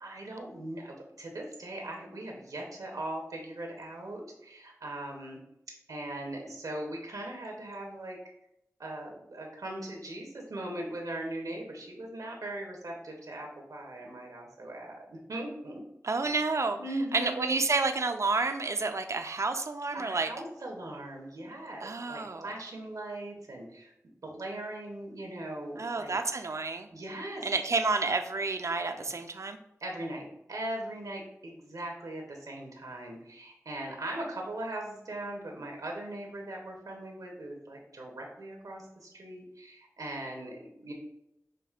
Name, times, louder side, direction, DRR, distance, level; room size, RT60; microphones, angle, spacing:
voice 1, 0.0-5.4 5.9-8.2 8.8-15.8 16.8-17.6 19.9-26.1 26.9-27.5 28.8-29.1 29.8-40.9, right 1 dB, 90° right, 1 dB, 0.7 m, -40 dB
voice 2, 16.0-16.8 17.1-20.3 21.8-22.5 25.8-26.9 27.4-29.6, right 3 dB, 60° right, 7 dB, 0.4 m, -30 dB
5.8 x 2.6 x 2.4 m, 0.81 s
wide cardioid pair, 50°, 6 cm